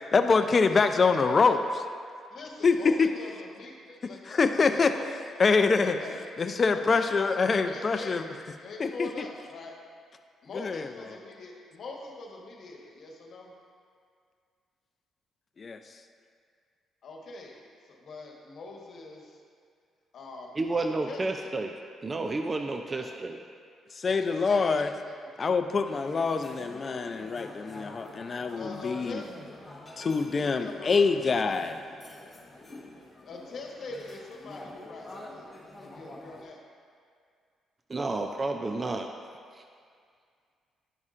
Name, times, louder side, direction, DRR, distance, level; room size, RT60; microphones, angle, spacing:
voice 1, 0.1-1.6 2.6-3.1 4.3-4.9 5.4-6.0 6.4-8.2 8.8-9.3 10.6-10.8 15.6-15.8 24.0-24.9 25.4-29.2 30.0-31.8, left 4 dB, 40° left, 8 dB, 0.4 m, -25 dB
voice 2, 0.7-1.6 2.3-4.2 4.5-5.1 5.8-6.2 6.7-7.3 7.6-9.7 10.4-13.5 17.0-19.4 20.1-21.5 22.9-23.1 24.0-25.2 28.5-29.3 30.1-31.0 33.2-36.6, left 3 dB, 60° left, -1 dB, 1.2 m, -43 dB
voice 3, 20.6-21.7 22.0-23.4 37.9-39.1 39.5-39.6, right 2 dB, 30° right, 5 dB, 0.4 m, -31 dB
sound 1, 25.9-36.4, left 1 dB, 15° left, 1.3 m, -47 dB
11.0 x 5.3 x 2.5 m, 2.2 s
cardioid pair, 90°, 0 cm